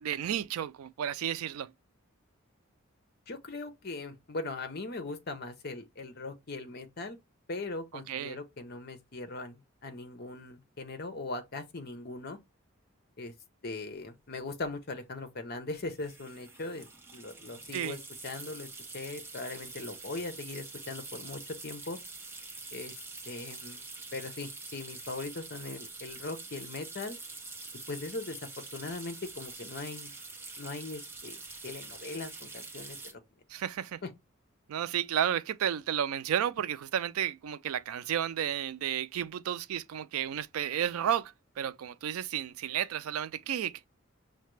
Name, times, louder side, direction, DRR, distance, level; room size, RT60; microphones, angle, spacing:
voice 1, 0.0-1.7 8.1-8.4 17.7-18.0 33.5-34.0 34.7-43.9, right 9 dB, 85° right, 0.3 m, -32 dB
voice 2, 3.3-7.2 7.5-12.4 13.2-13.3 13.6-16.9 17.1-18.7 18.9-22.0 22.7-22.9 23.2-23.8 24.1-27.2 27.9-30.1 30.6-33.2 34.0-34.1, left 3 dB, 50° left, 0.7 m, -40 dB
sound 1, 14.0-14.1 14.3-14.6 15.9-33.1, right 3 dB, 10° right, 0.5 m, -45 dB
5.7 x 2.2 x 3.1 m
head